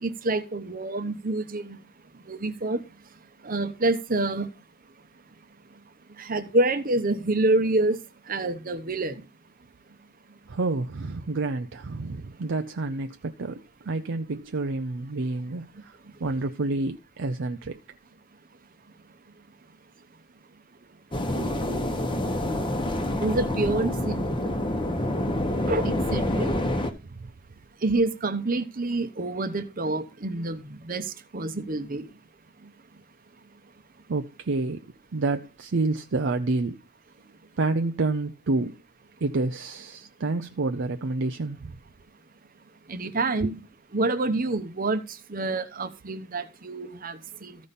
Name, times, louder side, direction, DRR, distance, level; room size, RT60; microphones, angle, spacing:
voice 1, 0.0-1.8 2.3-2.8 3.4-4.5 6.2-8.0 8.3-9.2 21.3-21.9 23.2-24.2 25.6-26.5 27.8-32.1 42.9-43.5 43.9-45.0 45.3-47.6, right 2 dB, 40° right, 0.9 m, -27 dB
voice 2, 10.5-17.8 27.1-27.3 34.1-34.8 35.1-36.8 37.6-38.7 39.2-41.8 43.4-43.5, right 3 dB, 55° right, 0.5 m, -29 dB
sound 1, 21.1-26.9, left 1 dB, 25° left, 1.0 m, -27 dB
14.5 x 5.2 x 4.1 m
head